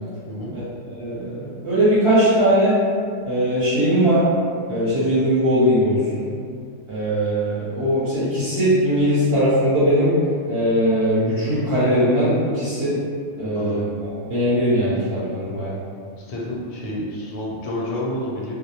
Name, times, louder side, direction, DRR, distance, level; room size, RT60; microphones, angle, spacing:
voice 1, 0.9-2.8 3.2-4.3 4.7-6.3 6.9-10.1 10.5-12.9 13.4-15.7, equal, 55° right, -13 dB, 0.8 m, -20 dB
voice 2, 13.4-13.8 16.2-18.5, left 1 dB, 85° left, -3 dB, 1.0 m, -29 dB
2.2 x 2.0 x 2.7 m, 2.2 s
omnidirectional pair, 1.4 m